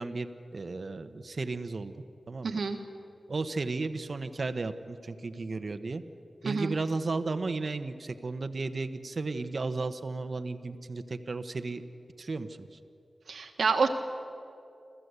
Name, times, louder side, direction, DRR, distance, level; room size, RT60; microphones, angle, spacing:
voice 1, 0.0-1.9 2.3-2.6 3.3-6.0 6.4-11.8 12.2-12.8, right 3 dB, 60° right, 10 dB, 1.1 m, -34 dB
voice 2, 2.4-2.8 6.4-6.7 13.3-13.9, right 4 dB, 80° right, 6 dB, 1.6 m, -28 dB
28.5 x 14.0 x 8.2 m, 2.6 s
cardioid pair, 50°, 0 cm